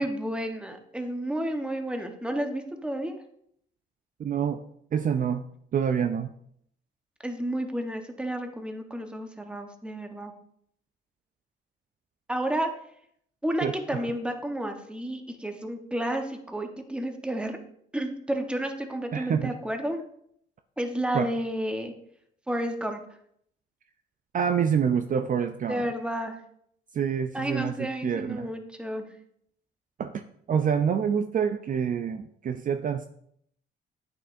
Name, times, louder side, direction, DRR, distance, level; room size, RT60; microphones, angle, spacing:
voice 1, 0.0-3.2 7.2-10.3 12.3-12.7 13.4-17.6 17.9-20.0 20.8-21.9 22.5-23.0 25.7-26.4 27.3-29.1, right 1 dB, 5° right, 5 dB, 1.0 m, -31 dB
voice 2, 4.2-4.6 4.9-5.4 5.7-6.3 13.6-14.0 19.1-19.5 21.1-21.3 24.3-25.8 26.9-28.5 30.0-33.1, right 7 dB, 45° right, 7 dB, 0.4 m, -27 dB
8.6 x 6.6 x 2.6 m, 0.69 s
cardioid pair, 90°, 20 cm